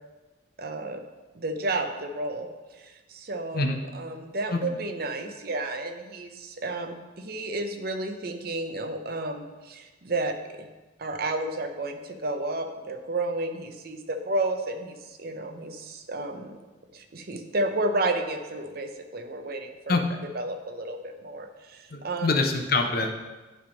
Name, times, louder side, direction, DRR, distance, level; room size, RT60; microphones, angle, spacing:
voice 1, 0.6-1.0 1.3-2.5 2.7-3.6 3.9-10.7 11.0-16.6 16.9-19.9 20.3-22.3, right 2 dB, 50° right, 6 dB, 0.7 m, -31 dB
voice 2, 21.9-23.1, left 3 dB, 50° left, 4 dB, 0.8 m, -25 dB
9.8 x 3.5 x 5.1 m, 1.2 s
head